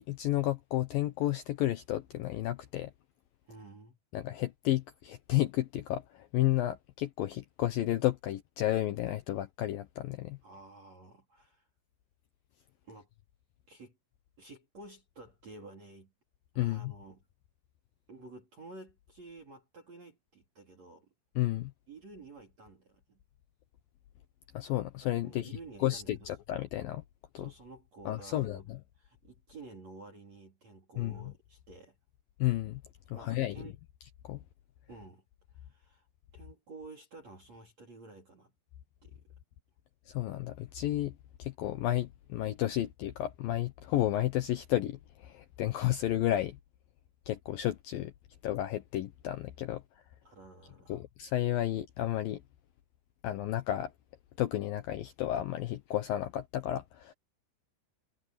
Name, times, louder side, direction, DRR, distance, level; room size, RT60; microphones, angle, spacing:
voice 1, 0.0-2.9 4.1-10.4 16.6-16.9 21.4-21.7 24.5-25.5 25.8-27.0 27.3-27.5 28.1-28.6 31.0-31.1 32.4-32.8 33.1-33.6 34.2-34.4 40.1-41.1 41.4-46.6 47.3-48.1 48.4-49.8 50.9-52.4 53.2-53.9 54.4-57.1, left 14 dB, 85° left, 2.0 m, -32 dB
voice 2, 3.5-4.0 10.4-11.7 12.8-13.1 13.7-14.0 14.4-16.1 16.6-17.2 18.1-21.1 21.9-23.2 25.2-26.3 27.3-28.7 28.9-32.0 33.1-33.8 34.9-35.2 35.5-36.1 36.3-38.5 39.0-39.2 50.2-51.0, right 3 dB, 40° right, 4.1 m, -51 dB
omnidirectional pair, 5.4 m